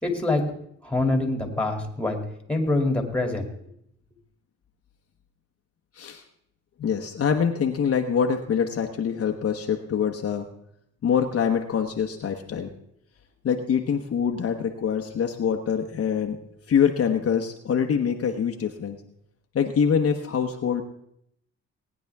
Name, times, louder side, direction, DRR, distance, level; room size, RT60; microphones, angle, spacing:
voice 1, 0.0-0.4 0.8-2.2 2.5-3.5, left 2 dB, 5° left, 3 dB, 2.6 m, -25 dB
voice 2, 6.8-10.5 11.0-12.7 13.4-16.4 16.7-19.0 19.5-20.8, left 7 dB, 50° left, 4 dB, 1.1 m, -24 dB
19.0 x 9.8 x 3.5 m, 0.72 s
cardioid pair, 90°, 30 cm